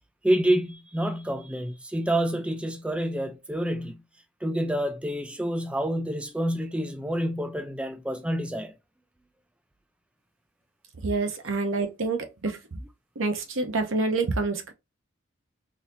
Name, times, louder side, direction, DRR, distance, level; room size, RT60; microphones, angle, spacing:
voice 1, 0.2-4.0 4.4-8.7, right 1 dB, 5° right, 0.3 m, -28 dB
voice 2, 11.0-12.8 13.2-14.7, right 3 dB, 85° right, 0.9 m, -27 dB
4.0 x 2.7 x 2.7 m
head